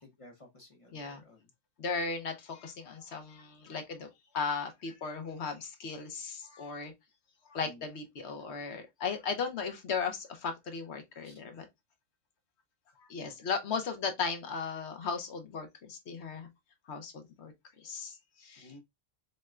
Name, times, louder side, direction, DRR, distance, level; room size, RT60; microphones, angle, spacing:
voice 1, 0.0-1.4 7.6-7.8 11.2-11.4 13.2-13.3 18.6-18.8, left 1 dB, 30° left, 0.7 m, -54 dB
voice 2, 0.9-1.2 1.8-6.9 7.5-11.7 13.1-16.5 16.9-17.5 17.8-18.7, left 5 dB, 60° left, 0.9 m, -36 dB
6.4 x 2.1 x 2.3 m
omnidirectional pair, 1.4 m